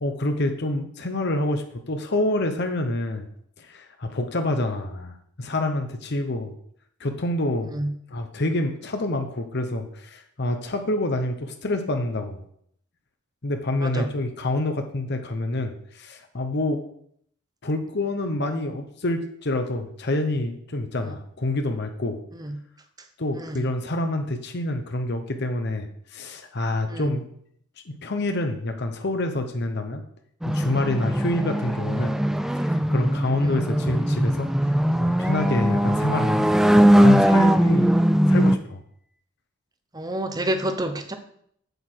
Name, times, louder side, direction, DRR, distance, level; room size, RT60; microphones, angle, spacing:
voice 1, 0.0-3.3 3.6-6.5 7.0-7.7 8.1-12.4 13.4-16.8 17.6-22.2 23.2-27.3 27.9-30.0 30.4-32.1 32.5-34.7 35.0-36.5 36.7-37.9 38.3-38.8, left 1 dB, 50° left, 6 dB, 0.9 m, -27 dB
sound 1, 30.4-38.6, equal, ahead, 0.3 m, -20 dB
voice 2, 39.9-41.1, right 1 dB, 20° right, 8 dB, 0.8 m, -28 dB
8.2 x 8.0 x 4.5 m, 0.67 s
head